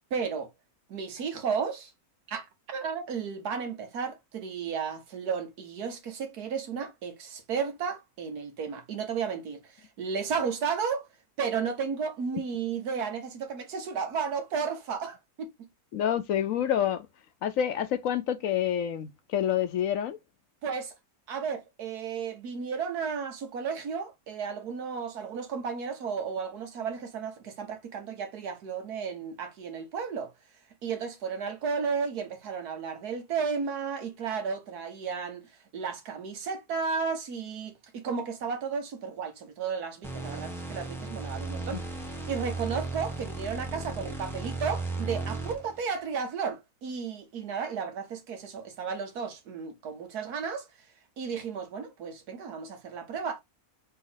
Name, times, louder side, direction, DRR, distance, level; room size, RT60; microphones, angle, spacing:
voice 1, 0.1-0.5 0.9-1.9 2.3-11.1 11.4-15.7 20.6-20.9 21.3-30.3 30.8-35.4 35.7-41.8 42.3-50.7 51.2-53.4, right 6 dB, 85° right, 1.6 m, -33 dB
voice 2, 15.9-17.1 17.4-20.2, left 10 dB, 65° left, 1.0 m, -28 dB
sound 1, 40.0-45.8, right 3 dB, ahead, 0.8 m, -35 dB
4.1 x 2.8 x 4.0 m
omnidirectional pair, 1.6 m